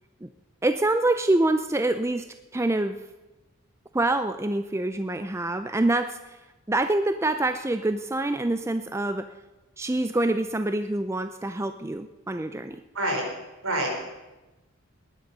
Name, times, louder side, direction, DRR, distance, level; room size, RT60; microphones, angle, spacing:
voice 1, 0.6-2.3 2.5-3.0 3.9-6.4 6.7-9.3 9.8-12.8, right 2 dB, 10° right, 9 dB, 0.4 m, -26 dB
voice 2, 12.9-13.2 13.6-13.9, right 1 dB, 70° right, 1 dB, 4.6 m, -26 dB
19.0 x 10.5 x 5.4 m, 1.1 s
head